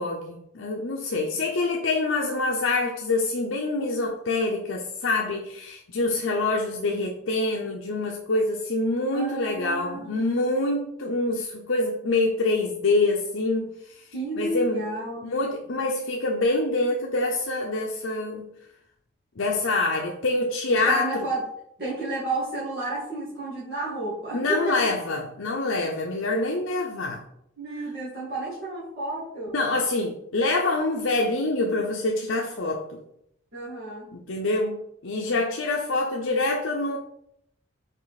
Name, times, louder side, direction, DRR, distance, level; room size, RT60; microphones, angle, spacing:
voice 1, 0.0-14.0 14.4-14.8 15.2-18.5 19.4-21.3 24.3-27.2 29.5-32.8 34.1-34.8 35.0-37.0, left 2 dB, 80° left, 0 dB, 0.7 m, -26 dB
voice 2, 9.1-10.3 14.1-15.3 20.7-21.5 21.8-24.8 27.6-29.6 33.5-34.1, right 2 dB, 50° right, -10 dB, 2.3 m, -31 dB
5.5 x 4.5 x 4.1 m, 0.74 s
head